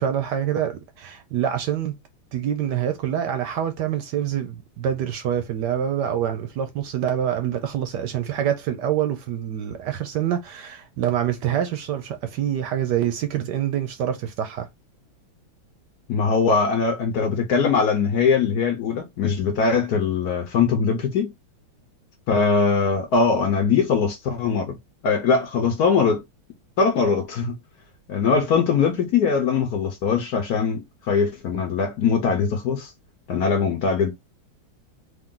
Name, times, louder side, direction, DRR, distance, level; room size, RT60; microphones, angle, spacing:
voice 1, 0.0-1.9 2.3-14.7, right 10 dB, 70° right, 1.1 m, -26 dB
voice 2, 16.1-21.3 22.3-24.8 25.0-26.2 26.8-27.6 28.1-32.9 33.3-34.1, left 5 dB, 65° left, 1.1 m, -21 dB
3.7 x 2.5 x 3.7 m
omnidirectional pair, 2.2 m